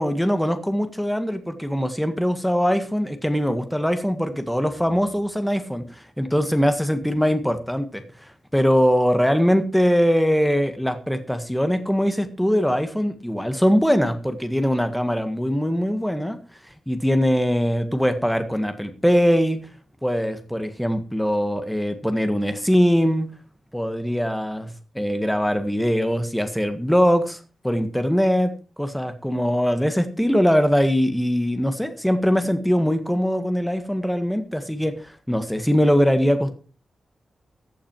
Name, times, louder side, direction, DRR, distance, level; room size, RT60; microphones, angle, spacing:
voice 1, 0.0-5.8 6.2-8.0 8.5-16.4 16.9-19.6 20.0-23.3 23.7-27.4 27.6-36.6, equal, ahead, 8 dB, 1.6 m, -22 dB
15.0 x 8.6 x 4.7 m, 0.36 s
wide cardioid pair, 155°, 0 cm